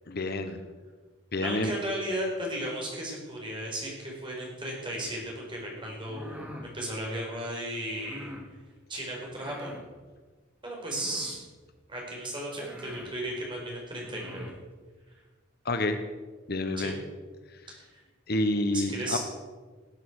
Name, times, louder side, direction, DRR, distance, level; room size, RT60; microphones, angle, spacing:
voice 1, 0.1-0.6 1.3-1.7 15.6-16.0 16.5-17.0 18.3-19.2, left 2 dB, 50° left, 8 dB, 1.0 m, -28 dB
voice 2, 1.4-8.3 8.9-9.7 10.6-11.4 11.9-14.5 16.8-16.9 17.7-17.9 18.7-19.2, right 1 dB, 25° right, -2 dB, 4.8 m, -35 dB
sound 1, 5.9-6.7 7.9-8.5 9.3-9.9 10.9-11.5 12.2-12.3 12.6-13.1 13.9-14.6, left 1 dB, 10° right, 1.9 m, -45 dB
18.5 x 9.3 x 6.4 m, 1.4 s
head